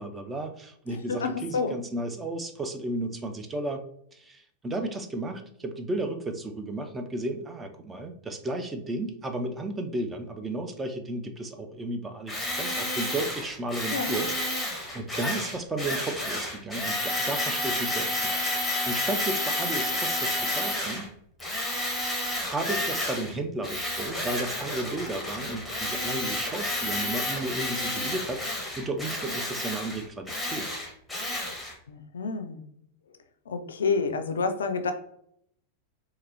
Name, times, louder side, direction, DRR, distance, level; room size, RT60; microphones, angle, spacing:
voice 1, 0.0-3.8 4.1-21.1 22.4-30.8, right 2 dB, 15° right, 6 dB, 0.4 m, -34 dB
voice 2, 0.9-1.8 13.9-14.2 31.9-32.6 33.5-34.9, left 4 dB, 65° left, 8 dB, 0.3 m, -29 dB
Tools, 12.3-21.1 21.4-23.3 23.6-31.7, left 1 dB, ahead, 1.1 m, -30 dB
3.9 x 2.7 x 2.7 m, 0.70 s
figure-of-eight pair, 90°, 0 cm